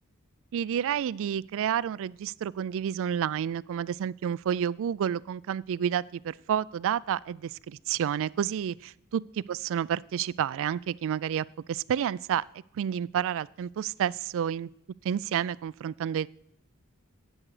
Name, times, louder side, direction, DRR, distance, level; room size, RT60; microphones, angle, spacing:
voice 1, 0.5-12.4 12.7-14.7 15.0-16.3, right 9 dB, 65° right, 21 dB, 0.3 m, -30 dB
12.5 x 8.8 x 4.9 m, 0.75 s
head